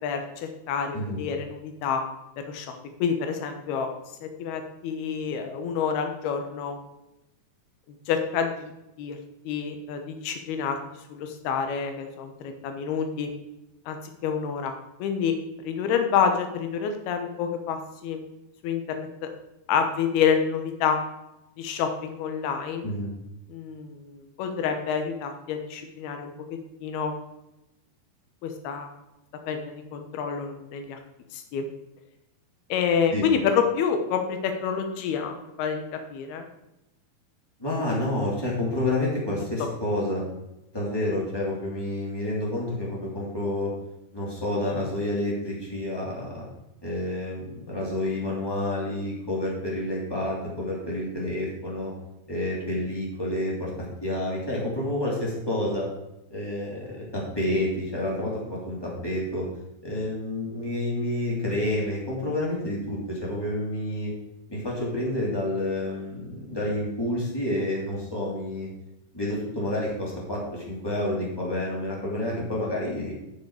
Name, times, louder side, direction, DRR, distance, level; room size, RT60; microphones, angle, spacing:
voice 1, 0.0-2.0 2.4-2.7 3.0-3.9 4.2-6.8 8.1-8.7 9.0-9.2 9.4-10.8 11.1-13.3 13.9-15.4 15.6-18.2 18.6-19.3 19.7-21.0 21.6-22.8 23.5-26.3 26.8-27.1 28.4-28.9 29.5-31.0 31.3-31.7 32.7-36.5, left 7 dB, 75° left, 5 dB, 3.0 m, -28 dB
voice 2, 37.6-40.3 40.7-43.7 44.1-46.4 46.8-51.9 52.3-55.9 56.3-59.4 59.8-64.1 64.5-68.7 69.1-73.1, left 1 dB, 5° left, -5 dB, 2.5 m, -29 dB
9.8 x 7.2 x 4.9 m, 0.90 s
omnidirectional pair, 4.8 m